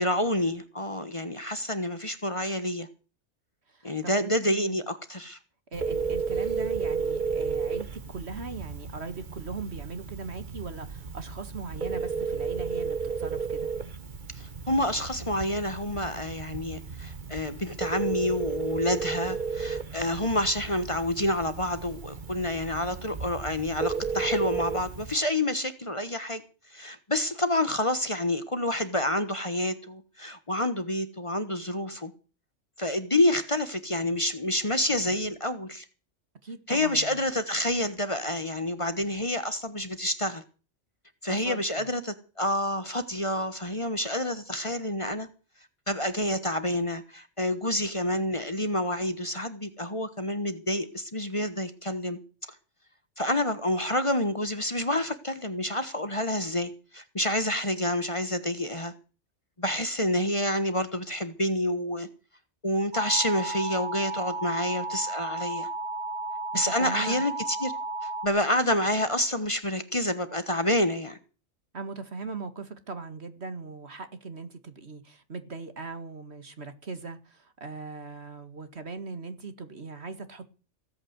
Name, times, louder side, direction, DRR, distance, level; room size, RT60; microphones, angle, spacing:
voice 1, 0.0-2.9 3.8-5.4 14.3-26.4 26.7-32.1 32.8-35.8 36.7-40.4 41.2-45.3 45.9-52.2 53.2-58.9 59.6-62.1 62.6-65.7 66.5-67.7 68.0-71.2, left 1 dB, 30° left, 1.3 m, -28 dB
voice 2, 3.7-4.8 5.7-13.7 36.4-37.3 41.3-41.9 66.5-67.2 71.7-80.4, right 4 dB, 65° right, 2.3 m, -39 dB
Telephone, 5.7-25.1, right 5 dB, 45° right, 1.5 m, -33 dB
sound 1, 62.9-68.3, right 2 dB, 80° right, 2.0 m, -33 dB
17.0 x 8.7 x 8.0 m
omnidirectional pair, 1.2 m